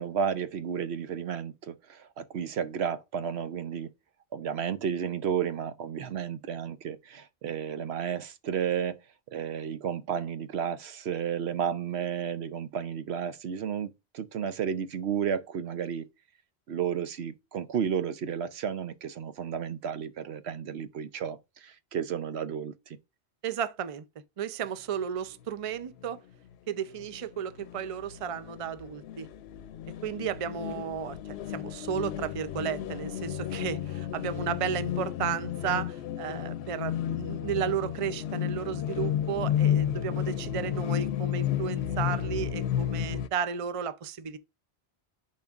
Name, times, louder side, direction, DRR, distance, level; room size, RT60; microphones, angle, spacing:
voice 1, 0.0-3.9 4.3-9.0 9.3-16.1 16.7-22.7, right 8 dB, 80° right, 0.9 m, -32 dB
voice 2, 23.4-24.0 24.4-26.2 26.7-29.3 30.0-31.2 31.5-44.4, right 8 dB, 40° right, 0.5 m, -33 dB
sound 1, 26.0-26.1 26.5-26.6 26.9-43.3, left 10 dB, 75° left, 0.8 m, -32 dB
10.5 x 4.4 x 2.4 m
omnidirectional pair, 1.1 m